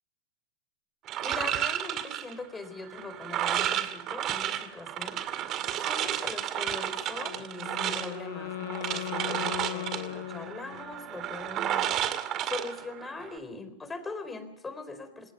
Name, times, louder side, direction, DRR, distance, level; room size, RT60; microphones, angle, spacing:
sound 1, 1.1-13.4, right 11 dB, 40° right, 2.1 m, -32 dB
voice 1, 1.2-5.2 5.8-11.9 12.4-15.3, left 3 dB, 15° left, 10 dB, 4.1 m, -41 dB
Wind instrument woodwind instrument, 7.2-11.1, left 15 dB, 70° left, 0.8 m, -38 dB
28.0 x 19.5 x 5.8 m, 0.75 s
hypercardioid pair, 110°, 0 cm